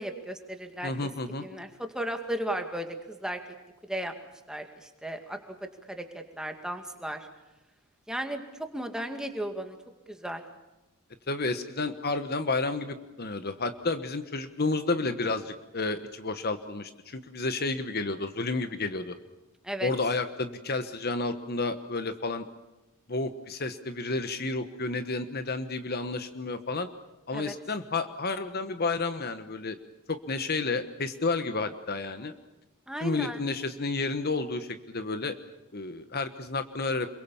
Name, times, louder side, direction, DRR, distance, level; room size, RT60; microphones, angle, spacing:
voice 1, 0.0-1.1 1.4-3.4 3.8-4.1 4.5-7.3 8.1-9.8 10.1-10.4 19.6-19.9 27.3-27.6 32.9-33.4, right 1 dB, 5° right, 5 dB, 2.2 m, -35 dB
voice 2, 0.8-1.4 11.3-19.1 19.8-22.5 23.1-26.9 27.3-29.8 30.1-32.3 33.0-35.3 35.7-37.1, left 3 dB, 45° left, 10 dB, 1.2 m, -31 dB
27.5 x 23.0 x 7.1 m, 1.0 s
head